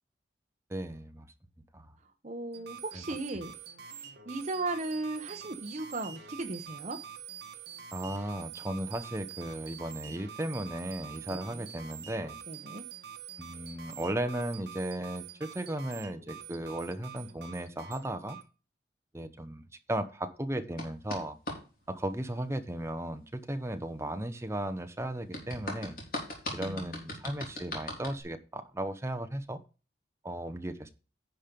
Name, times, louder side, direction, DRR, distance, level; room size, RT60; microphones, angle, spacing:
voice 1, 0.7-1.3 1.7-1.9 7.9-12.4 13.4-18.4 19.1-19.6 19.9-21.4 21.9-26.0 26.5-29.6 30.2-30.9, right 1 dB, 15° right, 9 dB, 0.8 m, -36 dB
voice 2, 2.0-3.6 3.8-7.0 11.3-11.6 12.5-12.8 26.6-27.1, right 2 dB, 40° right, 4 dB, 0.8 m, -37 dB
sound 1, 2.5-18.4, right 8 dB, 65° right, 1.4 m, -46 dB
sound 2, 20.8-21.6 25.3-28.2, left 1 dB, 55° left, 3.5 m, -38 dB
10.5 x 5.2 x 5.2 m, 0.34 s
head